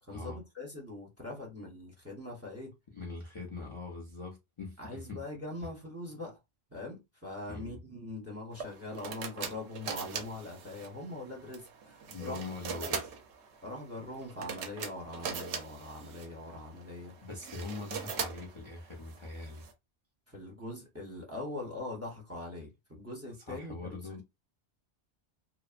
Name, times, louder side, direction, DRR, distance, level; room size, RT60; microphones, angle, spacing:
voice 1, 0.0-2.7 4.8-6.4 6.7-12.9 13.6-17.1 20.3-24.2, left 2 dB, 15° right, 0.7 m, -42 dB
voice 2, 2.9-5.2 5.6-5.7 7.5-7.8 12.1-13.1 17.2-19.7 23.5-24.2, left 3 dB, 40° left, 0.5 m, -42 dB
sound 1, 8.5-19.7, right 6 dB, 85° right, 0.9 m, -41 dB
2.7 x 2.0 x 2.4 m
omnidirectional pair, 1.1 m